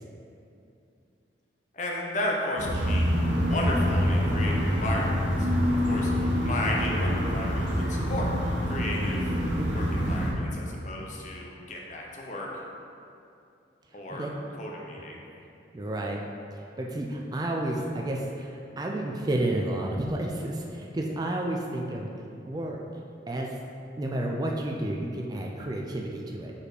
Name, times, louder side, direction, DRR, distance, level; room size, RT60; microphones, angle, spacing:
voice 1, 1.7-3.1 3.4-5.5 5.8-6.1 6.4-8.3 8.7-9.3 9.7-12.5 13.9-14.3 14.6-15.2, left 1 dB, 40° left, -2 dB, 0.8 m, -33 dB
sound 1, 2.6-10.3, equal, 80° right, 1.1 m, -26 dB
voice 2, 9.5-9.9 14.1-14.3 15.7-22.1 22.4-22.8 23.3-23.6 24.0-26.5, right 1 dB, 20° right, 0 dB, 0.4 m, -31 dB
5.2 x 4.3 x 4.8 m, 2.6 s
head